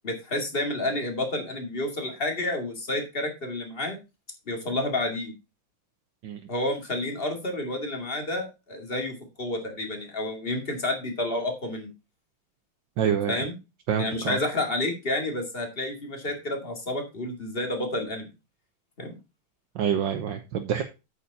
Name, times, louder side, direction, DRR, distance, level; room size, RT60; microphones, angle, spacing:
voice 1, 0.0-4.0 4.5-5.3 6.5-11.9 13.3-13.6 14.0-18.3 19.0-19.2, left 1 dB, 25° left, 4 dB, 2.4 m, -30 dB
voice 2, 13.0-13.3 13.9-14.4 19.7-20.8, right 8 dB, 70° right, 6 dB, 1.5 m, -26 dB
8.5 x 7.2 x 4.1 m, 0.27 s
omnidirectional pair, 2.2 m